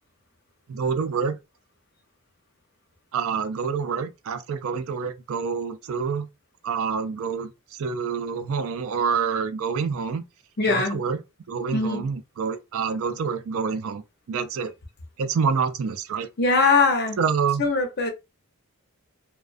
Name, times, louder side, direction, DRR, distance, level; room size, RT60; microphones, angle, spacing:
voice 1, 0.7-1.4 3.1-6.3 6.6-10.2 10.7-11.2 11.5-14.0 14.3-14.7 15.2-16.3 17.2-17.6, right 5 dB, 65° right, 0.4 m, -27 dB
voice 2, 10.6-11.0 11.7-12.1 16.4-17.2 17.6-18.1, left 3 dB, 45° left, 0.6 m, -21 dB
2.3 x 2.2 x 2.4 m
head